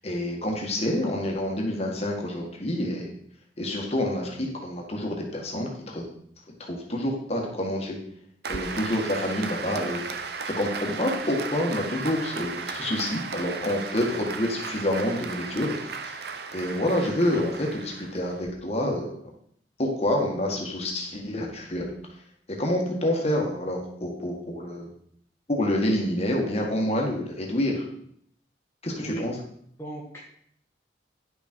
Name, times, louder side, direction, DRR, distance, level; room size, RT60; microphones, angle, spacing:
voice 1, 0.0-3.1 3.6-6.1 6.6-8.0 8.5-10.0 10.5-16.2 16.5-19.2 19.8-21.9 22.6-24.9 25.5-27.9 28.8-29.4, left 1 dB, 35° left, 0 dB, 1.7 m, -28 dB
Applause, 8.4-18.5, right 5 dB, 60° right, 0.7 m, -35 dB
voice 2, 29.8-30.2, right 1 dB, 15° left, -5 dB, 1.5 m, -35 dB
10.5 x 6.3 x 4.5 m, 0.66 s
head